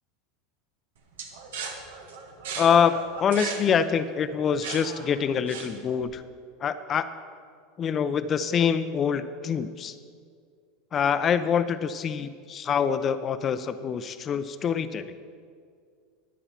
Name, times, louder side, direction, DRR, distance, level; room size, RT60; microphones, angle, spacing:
sound 1, 1.2-6.0, right 5 dB, 85° right, 1.5 m, -37 dB
voice 1, 2.6-6.2 6.6-7.0 7.8-10.0 10.9-15.1, left 7 dB, 35° left, 12 dB, 0.7 m, -25 dB
14.5 x 9.7 x 4.4 m, 2.1 s
hypercardioid pair, 100°, 0 cm